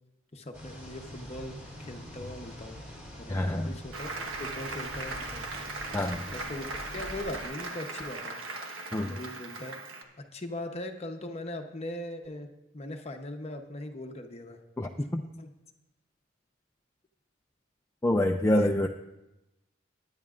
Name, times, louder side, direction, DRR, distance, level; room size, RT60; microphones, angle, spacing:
voice 1, 0.3-2.8 3.2-4.1 4.4-5.4 6.3-8.4 9.0-9.8 10.3-12.5 12.7-14.6 15.4-15.5 18.6-18.7, left 1 dB, 30° left, 4 dB, 0.8 m, -40 dB
sound 1, 0.5-7.4, equal, 10° right, 3.9 m, -45 dB
voice 2, 3.3-3.8 5.9-6.2 8.9-9.1 14.8-15.2 18.0-18.9, left 1 dB, 15° left, 2 dB, 0.3 m, -26 dB
Applause, 3.9-10.0, right 3 dB, 75° right, 1.2 m, -38 dB
19.5 x 9.7 x 2.5 m, 0.95 s
head